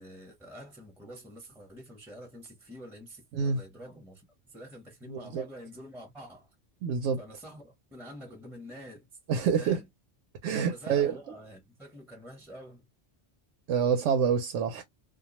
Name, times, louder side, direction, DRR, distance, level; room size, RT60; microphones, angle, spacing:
voice 1, 0.0-6.5 7.2-9.1 9.6-9.9 10.7-12.9, equal, ahead, 0.7 m, -47 dB
voice 2, 5.1-5.4 6.8-7.2 9.3-9.8 10.4-11.1 13.7-14.8, right 7 dB, 85° right, 0.9 m, -27 dB
2.3 x 2.2 x 2.8 m
omnidirectional pair, 1.2 m